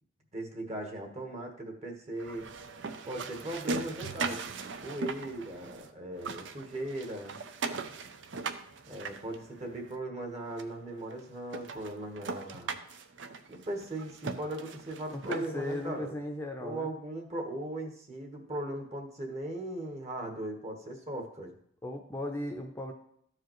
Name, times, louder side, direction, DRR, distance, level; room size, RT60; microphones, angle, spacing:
voice 1, 0.3-2.5 3.0-7.4 8.9-12.7 13.5-16.1 16.6-21.5, right 1 dB, 35° right, 3 dB, 1.3 m, -38 dB
sound 1, 2.2-5.9 6.1-9.9 10.6-10.7 11.1-11.2 11.5-15.7, right 4 dB, 70° right, 0.6 m, -39 dB
voice 2, 15.1-17.0 21.8-22.9, left 1 dB, 15° left, 3 dB, 0.6 m, -36 dB
13.5 x 4.8 x 3.1 m, 0.67 s
head